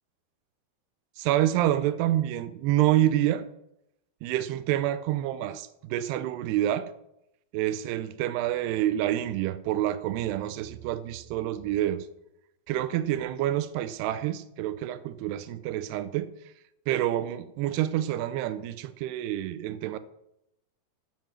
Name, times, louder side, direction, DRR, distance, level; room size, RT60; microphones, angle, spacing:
voice 1, 1.2-3.4 4.2-6.9 7.5-12.1 12.7-16.3 16.9-20.0, right 13 dB, 85° right, 13 dB, 2.7 m, -27 dB
12.5 x 7.7 x 7.3 m, 0.82 s
omnidirectional pair, 4.6 m